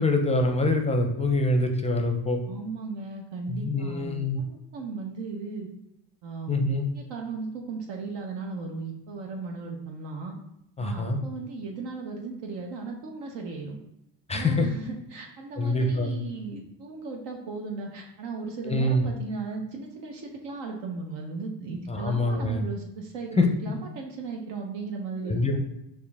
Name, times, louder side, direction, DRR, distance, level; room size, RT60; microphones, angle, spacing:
voice 1, 0.0-2.4 3.5-4.4 6.5-6.9 10.8-11.2 14.3-14.7 15.6-16.2 18.6-19.1 21.9-22.6 23.4-23.5 25.3-25.7, left 2 dB, 15° left, 4 dB, 0.5 m, -25 dB
voice 2, 2.5-5.7 6.2-6.7 6.9-10.4 10.8-13.8 14.3-25.6, right 4 dB, 70° right, 1 dB, 0.8 m, -36 dB
4.5 x 2.5 x 3.4 m, 0.83 s
cardioid pair, 85°, 45 cm